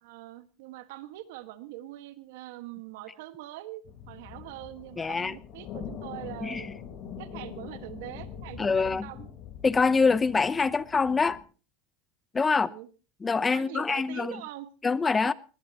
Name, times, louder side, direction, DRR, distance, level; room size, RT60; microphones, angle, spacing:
voice 1, 0.0-6.7 7.2-9.3 10.7-10.8 12.5-12.9 13.5-14.7, right 16 dB, 75° right, 1.6 m, -43 dB
sound 1, 3.9-11.4, left 7 dB, 50° left, 4.0 m, -43 dB
voice 2, 5.0-5.4 6.4-6.7 8.6-9.1 9.6-11.4 12.3-12.7 13.2-14.4 14.8-15.3, left 4 dB, 20° left, 0.7 m, -25 dB
20.0 x 19.0 x 3.0 m
supercardioid pair, 105°, 0 cm